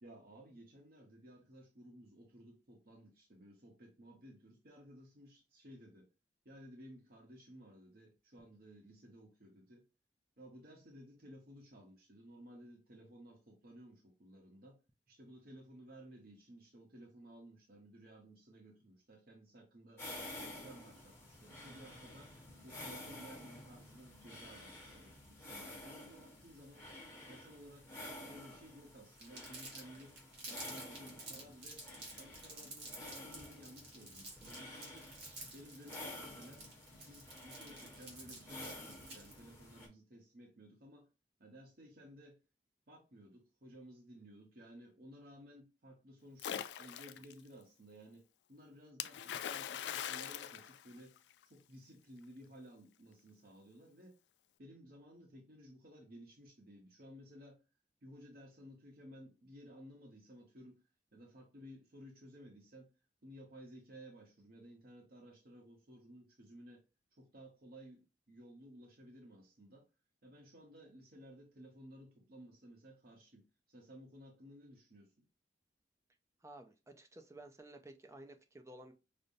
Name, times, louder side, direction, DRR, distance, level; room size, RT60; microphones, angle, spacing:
voice 1, 0.0-6.1 6.4-9.9 10.4-14.8 15.1-20.0 20.5-26.9 27.3-27.9 28.2-30.2 30.5-31.9 32.2-35.1 35.5-41.1 41.4-42.4 42.9-51.2 51.4-54.2 54.6-57.6 58.0-60.8 61.1-62.9 63.2-66.8 67.1-69.9 70.2-75.2, equal, 55° right, 0.9 m, -56 dB
sound 1, 20.0-39.9, left 1 dB, 15° left, 1.1 m, -51 dB
Crumpling crinkling, 29.2-39.4, right 2 dB, 90° right, 1.6 m, -50 dB
Splash splatter, 46.4-47.3 49.0-51.4, left 9 dB, 75° left, 0.3 m, -42 dB
voice 2, 76.4-78.9, right 1 dB, 15° right, 0.5 m, -54 dB
5.1 x 2.1 x 2.6 m
head